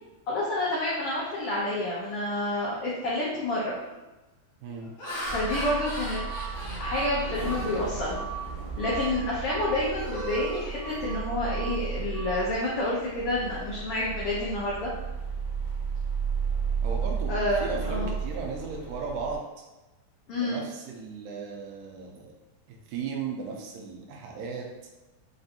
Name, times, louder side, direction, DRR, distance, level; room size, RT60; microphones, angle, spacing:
voice 1, 0.3-3.7 5.2-6.2 6.8-8.3 8.8-14.9 17.3-18.1 20.3-20.6, left 1 dB, 90° left, -6 dB, 1.2 m, -29 dB
Laughter, 3.8-4.0 4.7-8.5 8.9-9.2 9.5-11.5, equal, 60° left, 1.6 m, -39 dB
voice 2, 4.6-4.9 16.8-19.4 20.3-22.3 22.7-24.7, right 5 dB, 90° right, 0 dB, 2.1 m, -36 dB
sound 1, 5.2-19.4, right 6 dB, 40° right, 1.1 m, -33 dB
5.3 x 2.6 x 2.5 m, 1.1 s
omnidirectional pair, 3.5 m